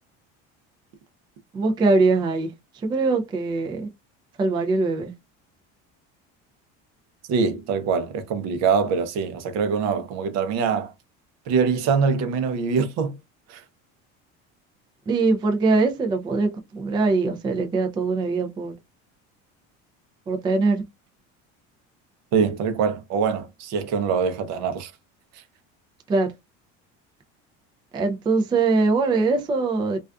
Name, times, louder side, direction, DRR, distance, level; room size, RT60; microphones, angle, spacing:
voice 1, 1.5-2.5 2.8-3.9 4.4-5.1 15.1-18.7 20.3-20.8 26.1-26.3 27.9-30.0, right 3 dB, 15° right, 0.3 m, -22 dB
voice 2, 7.3-10.9 11.5-13.2 13.5-13.6 22.3-24.9, right 6 dB, 60° right, 0.6 m, -23 dB
2.4 x 2.3 x 2.2 m
cardioid pair, 125°, 30 cm